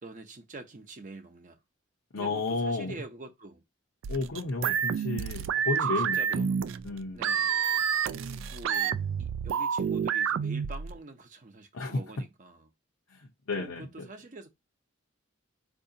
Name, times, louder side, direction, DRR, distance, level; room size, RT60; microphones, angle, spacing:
voice 1, 0.0-1.6 2.1-3.6 5.7-6.8 7.1-7.6 8.5-12.7 13.5-14.5, right 2 dB, 40° right, 0.7 m, -46 dB
voice 2, 2.1-3.0 4.1-6.5 6.8-7.2 11.7-12.0 13.1-14.1, left 3 dB, 85° left, 0.7 m, -32 dB
sound 1, 4.0-11.0, right 7 dB, 65° right, 0.3 m, -29 dB
4.7 x 2.7 x 2.7 m
head